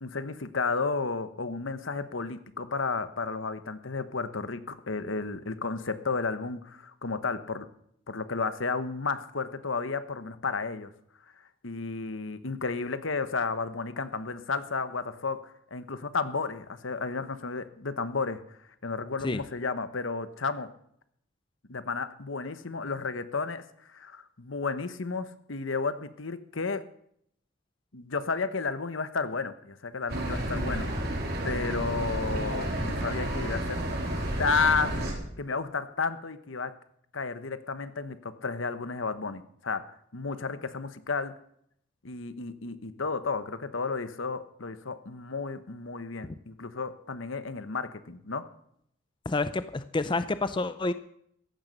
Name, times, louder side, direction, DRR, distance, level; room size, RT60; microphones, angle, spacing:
voice 1, 0.0-7.7 8.1-10.9 11.6-15.4 15.7-18.4 18.8-20.7 21.7-23.6 23.9-26.8 27.9-33.8 34.4-35.1 35.4-36.7 37.1-39.8 40.1-41.4 42.0-48.4, left 4 dB, 75° left, 12 dB, 1.2 m, -32 dB
sound 1, 30.1-35.1, right 1 dB, 50° right, 4.1 m, -31 dB
voice 2, 49.3-50.9, left 3 dB, 25° left, 13 dB, 0.5 m, -28 dB
15.0 x 11.0 x 6.6 m, 0.69 s
head